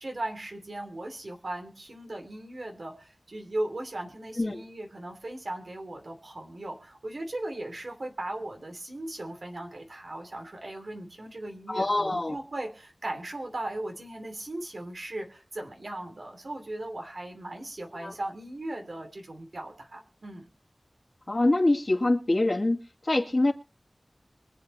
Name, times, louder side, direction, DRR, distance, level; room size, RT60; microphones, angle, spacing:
voice 1, 0.0-20.5, right 1 dB, 80° right, 4 dB, 2.9 m, -38 dB
voice 2, 11.7-12.4 18.0-18.1 21.3-23.5, left 2 dB, 50° left, 1 dB, 2.2 m, -25 dB
23.5 x 8.4 x 3.2 m, 0.35 s
wide cardioid pair, 45°, 0 cm